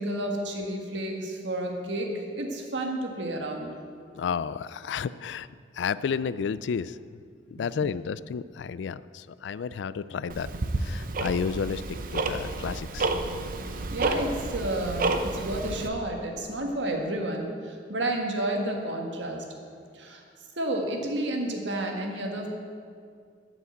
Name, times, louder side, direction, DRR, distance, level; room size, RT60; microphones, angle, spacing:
voice 1, 0.0-3.7 7.6-7.8 13.9-19.4 19.9-20.2 20.6-22.5, right 1 dB, 90° right, 2 dB, 1.7 m, -31 dB
voice 2, 4.1-5.5 5.7-7.2 7.5-10.5 10.8-11.8 12.1-13.1, left 6 dB, 80° left, 17 dB, 0.4 m, -31 dB
Tick-tock, 10.3-15.9, right 2 dB, 50° right, 0.7 m, -30 dB
12.0 x 6.0 x 8.2 m, 2.3 s
head